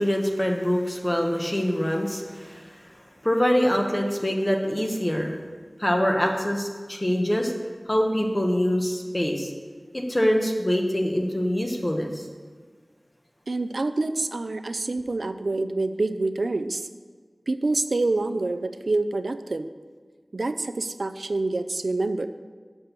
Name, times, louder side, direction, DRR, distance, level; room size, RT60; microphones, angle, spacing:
voice 1, 0.0-2.6 3.2-5.4 5.8-7.5 7.9-9.5 9.9-12.2, equal, 25° left, 2 dB, 1.1 m, -24 dB
voice 2, 13.5-16.9 17.5-19.7 20.3-22.3, right 2 dB, 90° right, 10 dB, 0.3 m, -27 dB
6.6 x 5.9 x 6.8 m, 1.5 s
wide cardioid pair, 50°, 0 cm